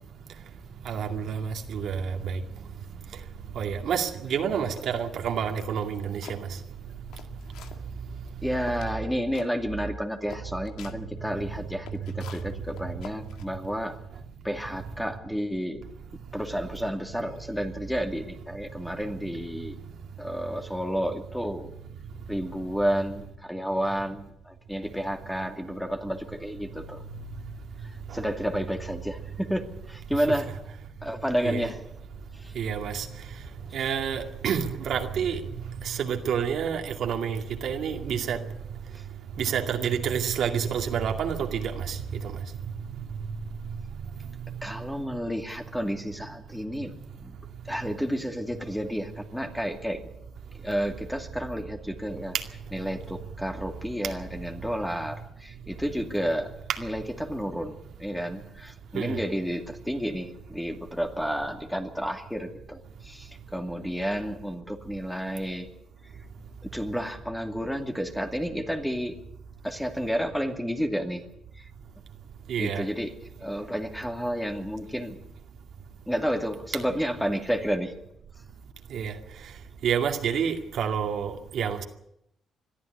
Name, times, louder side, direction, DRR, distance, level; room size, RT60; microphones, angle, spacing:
voice 1, 0.9-2.4 3.5-6.5 31.4-31.7 32.5-33.1 33.7-35.4 35.8-38.4 39.4-42.0 58.9-59.2 72.5-72.8 78.9-79.1 79.8-81.8, right 7 dB, 70° right, 2.2 m, -28 dB
sound 1, 5.6-6.4 6.9-7.8 8.3-8.4 8.7-9.0 9.3-9.5 9.9-10.0 10.3-11.0 11.6-13.8, left 8 dB, 85° left, 1.8 m, -45 dB
voice 2, 8.4-14.0 14.4-15.9 16.3-19.8 20.2-21.7 22.3-27.0 28.1-30.5 31.0-31.8 32.4-32.5 44.6-47.4 47.7-50.1 50.5-52.3 52.7-56.5 56.8-65.7 66.6-69.2 69.6-71.2 71.6-71.7 72.6-73.1 73.4-75.2 76.1-77.9, equal, 5° left, 2.4 m, -31 dB
21.5 x 13.0 x 9.5 m
cardioid pair, 90°, 0 cm